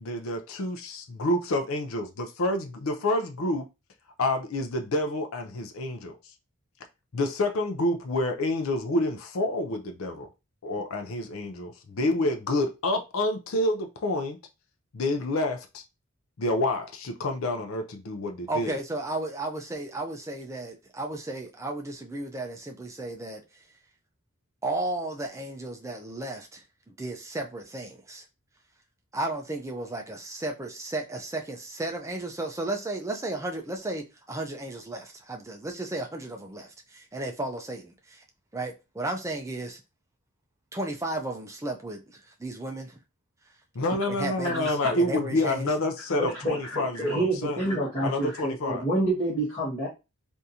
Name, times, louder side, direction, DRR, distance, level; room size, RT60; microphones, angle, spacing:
voice 1, 0.0-3.7 4.2-6.1 7.1-10.3 10.6-14.4 14.9-15.8 16.4-18.8 43.7-47.6 48.0-48.8, left 1 dB, 65° left, 0.5 m, -28 dB
voice 2, 18.5-23.4 24.6-28.2 29.1-38.2 38.5-39.8 40.7-42.9 44.1-45.7, right 2 dB, 15° right, 0.5 m, -34 dB
voice 3, 44.4-44.9 46.2-49.9, right 1 dB, 30° left, 1.6 m, -28 dB
3.5 x 2.6 x 2.8 m
head